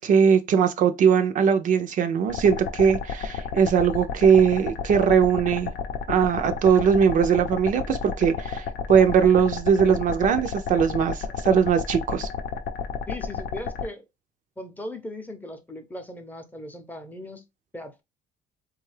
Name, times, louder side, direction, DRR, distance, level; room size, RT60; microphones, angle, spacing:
voice 1, 0.0-5.7 6.1-12.3, right 7 dB, 50° right, 0.4 m, -20 dB
sound 1, 2.3-13.9, left 6 dB, 70° left, 0.6 m, -32 dB
voice 2, 13.1-14.0 14.6-17.4 17.7-18.0, left 1 dB, 10° left, 0.6 m, -38 dB
3.6 x 2.3 x 3.2 m
cardioid pair, 110°, 17 cm